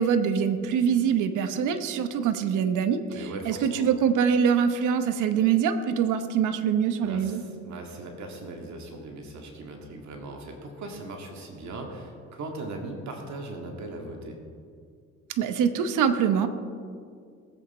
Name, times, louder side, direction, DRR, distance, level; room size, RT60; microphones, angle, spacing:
voice 1, 0.0-7.4 15.4-16.5, right 7 dB, 85° right, 9 dB, 1.0 m, -24 dB
voice 2, 3.1-3.9 7.0-14.4, right 2 dB, 70° right, 2 dB, 2.1 m, -39 dB
20.0 x 8.2 x 4.3 m, 2.2 s
cardioid pair, 90°, 30 cm